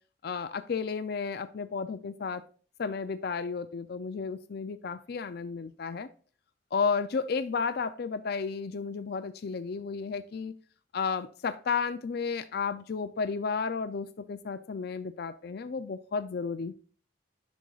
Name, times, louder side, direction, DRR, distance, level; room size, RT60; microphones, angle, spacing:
voice 1, 0.2-2.4 2.8-6.1 6.7-10.5 10.9-16.7, left 5 dB, 55° left, 12 dB, 0.4 m, -32 dB
10.5 x 6.2 x 2.4 m, 0.41 s
head